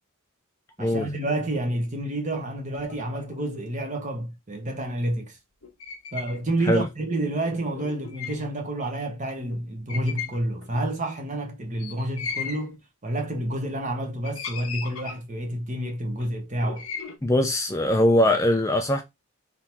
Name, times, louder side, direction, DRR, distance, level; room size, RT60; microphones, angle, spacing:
voice 1, 0.8-5.4 6.1-16.9, right 1 dB, 35° right, 1.1 m, -29 dB
sound 1, 2.7-3.9 5.6-6.4 6.7-6.8 7.5-8.5 9.0-9.1 9.3-9.6 9.9-10.8 11.8-12.7 13.5-13.9 14.2-15.4 16.2-17.2, left 6 dB, 75° left, 1.1 m, -37 dB
voice 2, 17.2-19.0, left 1 dB, 15° left, 0.5 m, -21 dB
3.9 x 2.8 x 4.5 m
head